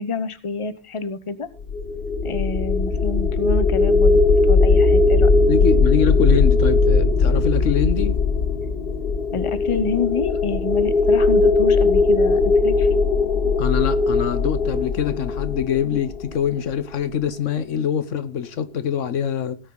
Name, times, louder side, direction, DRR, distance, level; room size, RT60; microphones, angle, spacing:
voice 1, 0.0-1.5 2.2-4.2 4.5-5.3 9.3-13.0, left 4 dB, 25° left, 1.0 m, -27 dB
sound 1, 1.6-16.7, left 3 dB, 50° left, 1.2 m, -19 dB
voice 2, 5.5-8.2 13.6-19.6, left 8 dB, 75° left, 1.3 m, -24 dB
17.5 x 9.1 x 3.9 m
omnidirectional pair, 1.3 m